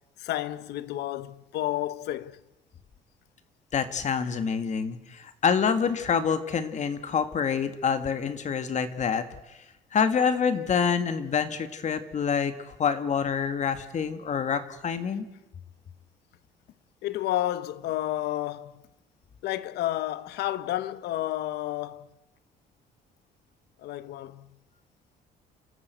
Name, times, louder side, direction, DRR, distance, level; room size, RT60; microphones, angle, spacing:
voice 1, 0.2-2.4 17.0-18.8 19.4-22.1 23.8-24.5, left 14 dB, 80° left, 1.1 m, -31 dB
voice 2, 3.7-9.6 9.9-15.3, left 6 dB, 45° left, 1.8 m, -27 dB
29.0 x 14.0 x 8.2 m
cardioid pair, 110°, 17 cm